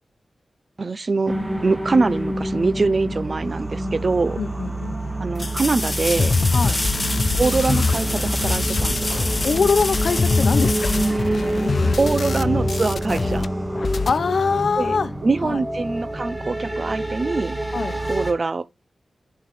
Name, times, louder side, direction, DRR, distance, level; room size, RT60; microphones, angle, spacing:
voice 1, 0.8-1.3 1.6-4.4 5.2-6.3 7.4-9.3 12.0-13.5 14.8-14.9 15.2-17.6 18.1-18.6, right 3 dB, 40° right, 0.6 m, -23 dB
sound 1, 1.3-18.3, right 1 dB, 10° right, 1.8 m, -27 dB
sound 2, 4.0-4.1 5.3-12.0 14.8-14.9, left 2 dB, 25° left, 0.9 m, -28 dB
voice 2, 4.4-5.0 6.5-6.8 9.4-12.1 14.1-15.1 15.4-15.6 17.7-18.0, left 5 dB, 70° left, 0.8 m, -24 dB
sound 3, 6.2-13.5 13.7-14.2, left 4 dB, 55° left, 0.4 m, -24 dB
11.0 x 5.7 x 3.2 m
wide cardioid pair, 120°, 0 cm